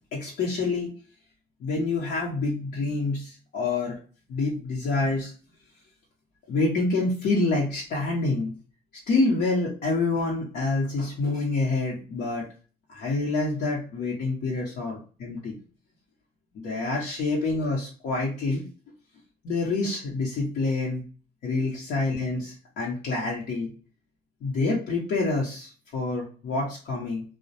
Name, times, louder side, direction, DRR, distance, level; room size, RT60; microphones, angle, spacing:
voice 1, 0.1-0.9 1.6-4.0 4.3-5.3 6.5-8.5 9.1-12.4 12.9-15.5 16.5-18.6 19.4-21.0 21.4-23.7 24.4-27.2, left 3 dB, 65° left, -5 dB, 0.9 m, -27 dB
2.3 x 2.1 x 2.6 m, 0.38 s
cardioid pair, 110°, 17 cm